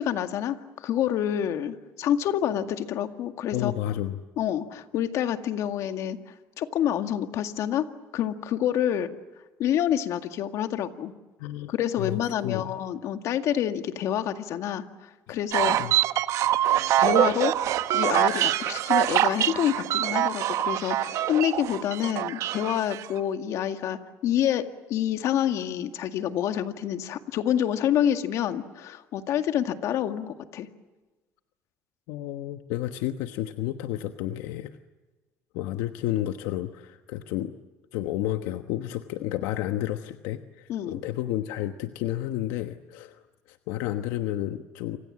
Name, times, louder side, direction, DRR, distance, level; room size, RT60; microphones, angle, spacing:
voice 1, 0.0-3.7 4.4-6.2 6.6-9.2 9.6-11.1 11.7-15.8 17.0-17.6 17.9-30.7 40.7-41.0, left 10 dB, 65° left, 7 dB, 2.0 m, -27 dB
voice 2, 3.5-4.2 11.4-12.8 15.3-15.4 15.8-16.0 32.1-34.8 35.5-37.6 37.9-43.2 43.5-45.0, left 13 dB, 90° left, 8 dB, 1.2 m, -31 dB
sound 1, 15.5-23.1, right 12 dB, 65° right, 1.2 m, -24 dB
29.0 x 26.5 x 7.5 m, 1.2 s
cardioid pair, 105°, 6 cm